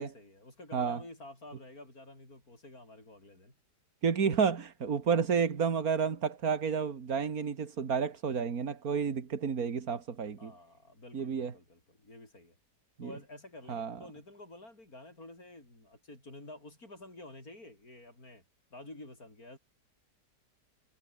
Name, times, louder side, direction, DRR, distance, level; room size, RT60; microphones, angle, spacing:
voice 1, 0.0-3.5 10.4-12.6 13.0-18.4 18.7-19.6, left 2 dB, 55° left, 8.0 m, -50 dB
voice 2, 4.0-10.5 11.1-11.5 13.0-13.1 13.7-14.0, right 6 dB, 60° right, 2.3 m, -30 dB
omnidirectional pair, 1.8 m